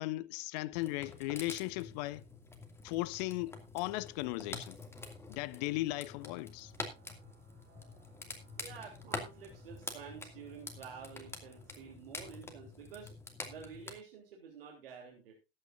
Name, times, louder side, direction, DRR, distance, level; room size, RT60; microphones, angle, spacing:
voice 1, 0.0-2.2 2.8-4.8 5.3-6.7, left 19 dB, 45° left, 0.6 m, -37 dB
sound 1, 0.7-13.9, left 3 dB, 10° left, 2.4 m, -47 dB
sound 2, 5.8-11.9, right 5 dB, 35° right, 5.0 m, -66 dB
voice 2, 8.6-13.1 13.5-15.3, right 6 dB, 65° right, 3.3 m, -50 dB
20.5 x 8.9 x 2.6 m
figure-of-eight pair, 85°, 31 cm